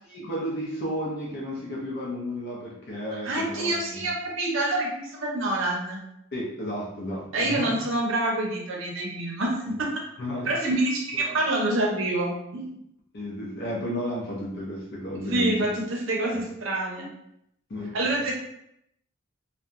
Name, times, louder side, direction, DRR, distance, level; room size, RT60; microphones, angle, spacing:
voice 1, 0.1-4.1 6.3-7.8 10.2-10.5 11.2-11.3 13.1-15.8 16.2-16.4 17.7-18.1, equal, 55° left, -4 dB, 0.6 m, -33 dB
voice 2, 3.2-6.0 7.3-9.9 10.4-12.8 15.3-17.1 17.9-18.3, right 2 dB, 65° right, -1 dB, 0.6 m, -27 dB
2.7 x 2.2 x 2.5 m, 0.76 s
head